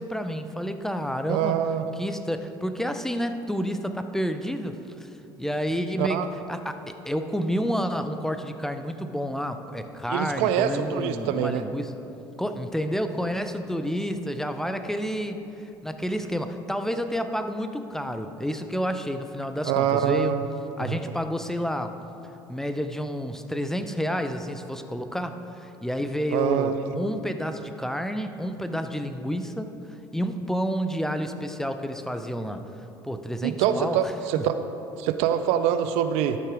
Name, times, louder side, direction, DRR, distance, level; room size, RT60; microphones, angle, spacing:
voice 1, 0.0-1.6 2.0-5.1 5.4-6.2 6.5-11.9 12.4-15.4 15.8-20.4 20.8-21.9 22.5-29.7 30.1-32.7 33.0-34.1 34.4-34.5, equal, 5° left, 8 dB, 0.6 m, -29 dB
voice 2, 1.3-1.8 6.0-6.3 10.1-11.6 19.6-20.4 20.9-21.0 26.3-26.7 33.4-34.6 35.0-36.4, right 9 dB, 65° right, 10 dB, 0.5 m, -24 dB
12.0 x 5.5 x 4.8 m, 2.9 s
hypercardioid pair, 65°, 11 cm